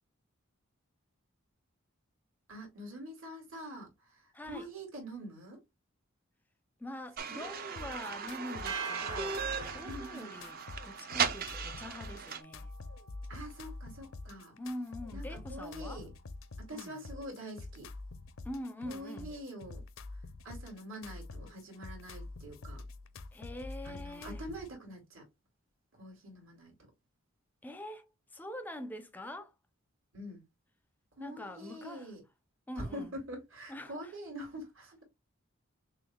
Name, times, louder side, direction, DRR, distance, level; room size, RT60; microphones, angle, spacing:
voice 1, 2.5-5.6 7.3-7.5 9.8-10.3 13.3-14.6 15.1-16.1 16.6-17.9 18.8-19.8 20.4-22.8 23.8-25.2 26.0-26.7 30.1-30.4 31.2-32.2 32.8-35.0, right 1 dB, 70° right, 2.2 m, -45 dB
voice 2, 4.3-4.7 6.8-9.4 9.6-12.7 14.6-16.0 16.7-17.0 18.4-19.3 23.3-24.4 27.6-29.5 31.2-32.1 32.7-33.1 33.7-34.1, left 1 dB, 10° left, 0.5 m, -44 dB
sound 1, 7.2-12.4, right 6 dB, 45° right, 0.5 m, -37 dB
sound 2, 7.8-24.7, left 3 dB, 70° left, 0.5 m, -46 dB
sound 3, 8.7-15.0, right 5 dB, 90° right, 0.9 m, -47 dB
6.2 x 2.3 x 2.2 m
head